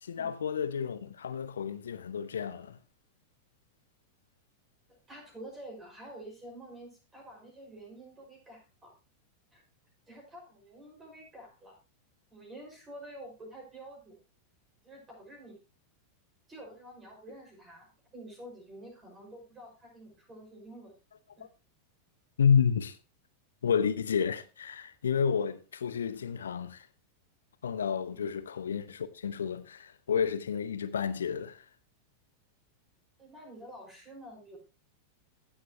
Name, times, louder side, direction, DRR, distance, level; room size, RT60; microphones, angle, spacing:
voice 1, 0.0-2.8 22.4-23.0 23.6-26.9 27.6-31.6, left 7 dB, 65° left, 0.8 m, -30 dB
voice 2, 4.9-8.9 9.5-9.6 10.1-11.7 12.3-14.2 14.8-15.6 16.5-20.9 21.4-21.5 28.1-28.3 33.2-34.6, right 1 dB, 20° right, 5.5 m, -49 dB
15.5 x 7.5 x 3.0 m
figure-of-eight pair, 90°, 0 cm